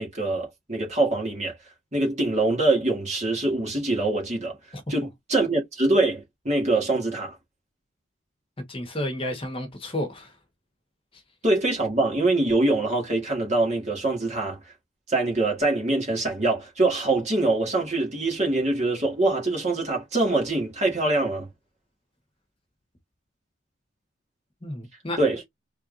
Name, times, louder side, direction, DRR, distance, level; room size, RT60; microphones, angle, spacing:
voice 1, 0.0-1.6 1.9-4.6 4.9-7.4 11.4-14.6 15.1-21.5 25.2-25.5, right 2 dB, 35° right, 2.2 m, -24 dB
voice 2, 8.7-10.4 11.1-11.2 24.6-25.2, left 1 dB, 30° left, 1.2 m, -31 dB
4.5 x 3.5 x 2.5 m
head